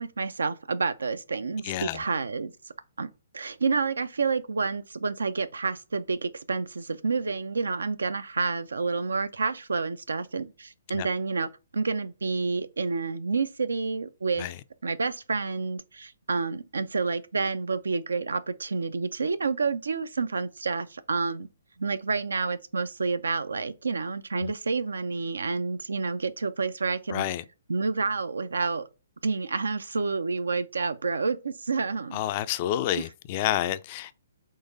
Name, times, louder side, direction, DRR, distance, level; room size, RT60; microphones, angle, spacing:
voice 1, 0.0-2.5 3.0-3.1 3.3-14.5 14.8-21.5 21.8-27.2 27.7-28.8 29.2-32.2, right 4 dB, 85° right, 0.4 m, -29 dB
voice 2, 1.6-2.0 10.9-11.1 14.4-14.5 24.4-24.5 27.1-27.4 32.1-34.1, left 12 dB, 40° left, 0.3 m, -29 dB
3.9 x 3.1 x 3.9 m
hypercardioid pair, 135°, 0 cm